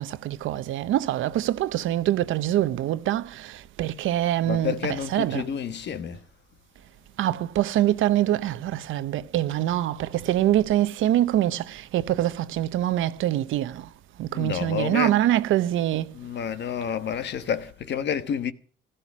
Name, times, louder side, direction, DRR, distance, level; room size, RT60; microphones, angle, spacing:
voice 1, 0.0-5.4 7.2-13.9 14.2-16.1, right 13 dB, 85° right, 0.9 m, -24 dB
voice 2, 4.4-6.2 14.3-15.2 16.1-18.5, left 8 dB, 60° left, 1.2 m, -29 dB
16.0 x 13.0 x 6.1 m
cardioid pair, 90°, 20 cm